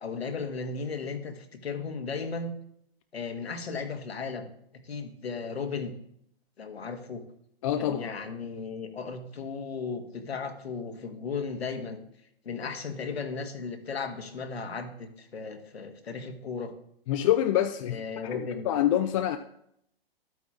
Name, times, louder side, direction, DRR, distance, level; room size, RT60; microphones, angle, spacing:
voice 1, 0.0-2.5 3.1-4.5 4.8-5.9 6.6-7.2 7.8-12.0 12.4-16.7 17.9-18.7, left 4 dB, 85° left, 6 dB, 1.3 m, -35 dB
voice 2, 7.6-8.1 17.1-18.0 18.3-19.4, left 12 dB, 35° left, 7 dB, 0.5 m, -26 dB
12.0 x 9.2 x 2.4 m, 0.73 s
hypercardioid pair, 125°, 31 cm